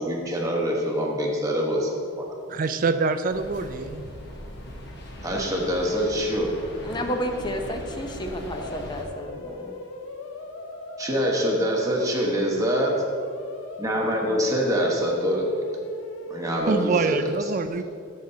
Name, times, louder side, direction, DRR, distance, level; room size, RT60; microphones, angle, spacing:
voice 1, 0.0-2.3 5.2-6.5 11.0-13.0 13.8-15.5 16.3-17.2, equal, 15° right, -2 dB, 1.1 m, -25 dB
voice 2, 2.5-4.1 16.7-17.8, right 4 dB, 45° right, 10 dB, 0.4 m, -25 dB
sound 1, 3.3-9.0, equal, 60° left, 1.2 m, -39 dB
voice 3, 6.8-9.8, equal, 20° left, 4 dB, 0.7 m, -31 dB
sound 2, 8.5-16.6, left 2 dB, 80° left, 0.8 m, -38 dB
13.5 x 6.5 x 2.8 m, 2.4 s
head